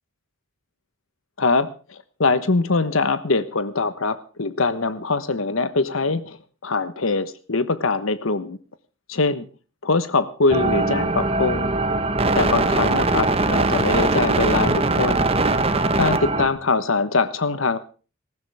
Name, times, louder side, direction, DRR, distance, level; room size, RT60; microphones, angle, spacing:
voice 1, 1.4-6.4 6.6-8.6 9.1-9.5 9.8-11.7 12.3-15.3 16.0-17.8, left 3 dB, 80° left, 13 dB, 1.2 m, -23 dB
sound 1, 10.5-16.5, right 2 dB, 30° right, 1.3 m, -21 dB
19.5 x 15.5 x 3.5 m, 0.35 s
head